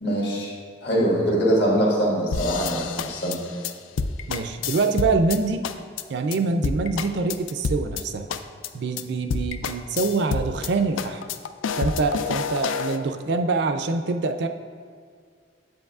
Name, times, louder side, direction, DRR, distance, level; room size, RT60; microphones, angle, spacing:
voice 1, 0.0-0.5 0.8-3.4, equal, 60° left, -3 dB, 1.6 m, -23 dB
sound 1, 2.3-5.4 5.6-6.0 6.3-6.4 6.6-8.0 8.3-8.7 9.0-9.1 9.3-10.7 11.0-13.0, left 5 dB, 85° left, 0.4 m, -28 dB
voice 2, 4.3-5.6 6.1-8.3 8.7-11.2 11.8-14.5, right 3 dB, 60° right, 7 dB, 0.4 m, -25 dB
7.8 x 7.7 x 2.4 m, 2.1 s
head